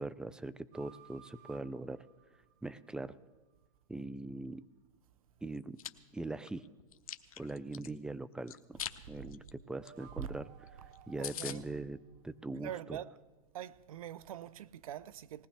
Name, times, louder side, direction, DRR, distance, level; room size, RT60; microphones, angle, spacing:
voice 1, 0.0-2.0 2.6-3.2 3.9-4.6 5.4-5.8 6.1-6.6 7.4-8.8 9.1-10.5 11.1-12.0 12.2-13.0, right 2 dB, 5° right, 0.4 m, -41 dB
sound 1, 0.7-3.1 9.6-12.9, right 8 dB, 45° right, 1.2 m, -60 dB
Chewing mastication, 5.5-5.9 6.4-7.9 8.5-9.0 9.3-9.5 9.9-10.0 10.2-10.3 10.7-10.8 10.9-11.0 11.2-11.6, left 10 dB, 75° left, 0.8 m, -42 dB
voice 2, 11.2-11.6 12.5-13.2 13.5-15.5, right 10 dB, 70° right, 0.6 m, -44 dB
20.0 x 18.0 x 3.3 m
hypercardioid pair, 115°, 19 cm